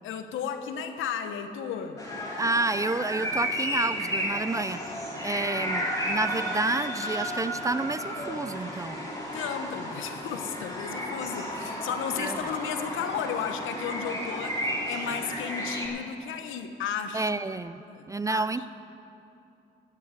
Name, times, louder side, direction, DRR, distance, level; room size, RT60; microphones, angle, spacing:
voice 1, 0.0-2.0 5.3-5.9 9.3-14.6 14.9-17.3 17.9-18.5, left 7 dB, 80° left, 8 dB, 1.0 m, -34 dB
sound 1, 2.0-15.9, equal, 15° left, 3.2 m, -33 dB
voice 2, 2.4-4.9 5.2-9.1 12.2-12.4 17.1-17.8 18.1-18.7, right 2 dB, 15° right, 14 dB, 0.3 m, -29 dB
12.5 x 8.0 x 8.1 m, 2.8 s
cardioid pair, 90°, 20 cm